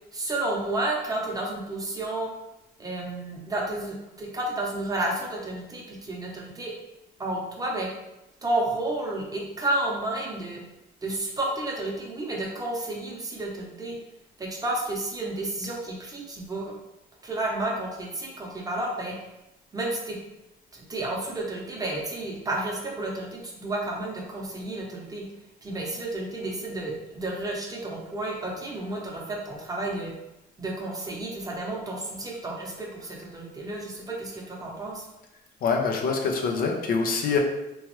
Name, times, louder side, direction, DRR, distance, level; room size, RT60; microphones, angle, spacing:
voice 1, 0.1-2.3 2.8-6.7 7.2-7.9 8.4-10.6 11.0-14.0 14.4-16.7 17.2-19.1 19.7-20.2 20.7-25.2 25.6-30.1 30.6-35.1, right 2 dB, 20° right, -2 dB, 0.8 m, -31 dB
voice 2, 35.6-37.4, left 5 dB, 60° left, 2 dB, 0.6 m, -25 dB
3.4 x 3.0 x 3.1 m, 0.94 s
cardioid pair, 110°, 17 cm